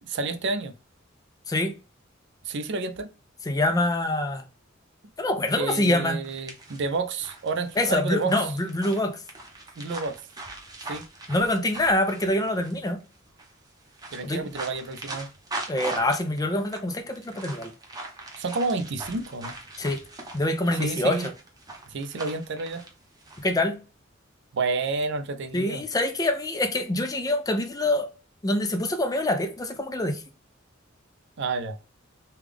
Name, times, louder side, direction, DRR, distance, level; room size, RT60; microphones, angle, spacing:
voice 1, 0.0-0.7 2.4-3.1 5.5-8.5 9.8-10.2 10.9-11.1 14.1-15.3 18.4-19.5 20.8-21.3 21.9-22.8 24.5-25.8 31.4-31.8, right 3 dB, 60° right, 0.5 m, -30 dB
voice 2, 3.5-4.4 5.2-6.2 7.8-9.2 11.3-13.0 14.2-14.4 15.7-17.7 19.8-20.0 20.3-21.2 23.4-23.8 25.5-28.1 28.4-30.2, left 1 dB, 20° left, 0.5 m, -25 dB
sound 1, 6.2-12.8 13.3-13.5 13.9-23.5, right 2 dB, 20° right, 0.7 m, -40 dB
3.4 x 2.3 x 3.4 m
head